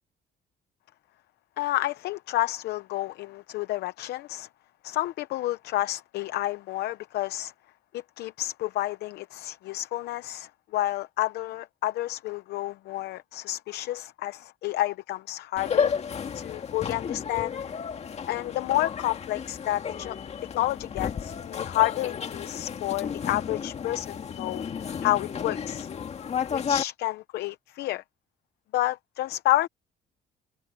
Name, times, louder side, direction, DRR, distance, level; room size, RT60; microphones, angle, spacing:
voice 1, 1.6-4.5 4.8-7.5 7.9-15.9 16.3-17.6 18.3-20.2 20.5-24.6 25.0-25.9 26.5-28.0 28.7-29.7, left 16 dB, 75° left, 0.8 m, -30 dB
sound 1, 15.6-26.8, left 7 dB, 40° left, 2.0 m, -32 dB
cardioid pair, 110°, 17 cm